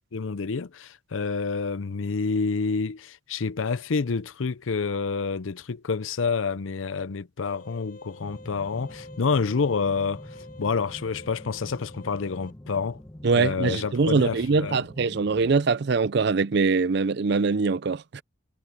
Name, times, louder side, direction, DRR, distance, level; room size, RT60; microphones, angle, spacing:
voice 1, 0.1-13.0 13.3-14.8, left 4 dB, 75° left, 0.6 m, -28 dB
sound 1, 7.4-12.5, left 1 dB, 45° left, 7.9 m, -47 dB
sound 2, 8.2-15.6, left 1 dB, 15° left, 1.0 m, -45 dB
voice 2, 13.2-18.2, right 4 dB, 55° right, 0.5 m, -23 dB
head